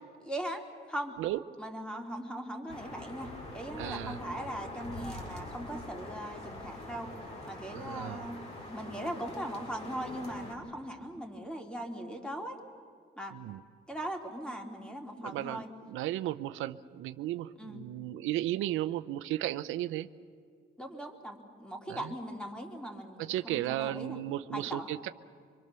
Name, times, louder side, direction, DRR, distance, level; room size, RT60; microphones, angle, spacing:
voice 1, 0.2-0.6 0.9-1.2 1.6-3.3 3.5-7.1 7.5-8.4 8.7-12.5 13.2-13.3 13.9-15.7 17.6-17.8 20.8-24.2 24.5-25.1, right 1 dB, 5° left, 3 dB, 3.0 m, -39 dB
sound 1, 2.7-10.5, left 1 dB, 35° left, 5.4 m, -44 dB
voice 2, 3.8-4.2 7.7-8.3 13.3-13.6 15.2-15.6 15.9-20.1 21.9-22.1 23.2-25.1, right 14 dB, 90° right, 11 dB, 0.6 m, -34 dB
25.5 x 23.0 x 6.8 m, 2.1 s
cardioid pair, 90°, 20 cm